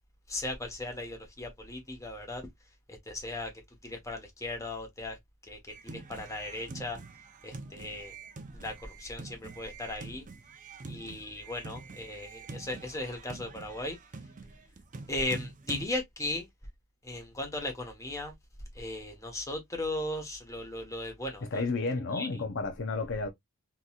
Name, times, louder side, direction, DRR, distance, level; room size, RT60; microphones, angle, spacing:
voice 1, 0.3-2.4 2.9-3.5 3.8-5.2 5.5-5.6 5.8-7.0 7.4-8.1 8.5-10.2 10.9-14.0 15.1-16.5 17.0-18.3 18.7-21.7 22.1-22.3, left 2 dB, 15° left, 1.2 m, -37 dB
sound 1, 5.7-15.9, right 3 dB, 35° right, 0.5 m, -45 dB
voice 2, 21.5-23.3, left 3 dB, 55° left, 0.6 m, -31 dB
3.8 x 2.9 x 2.3 m
head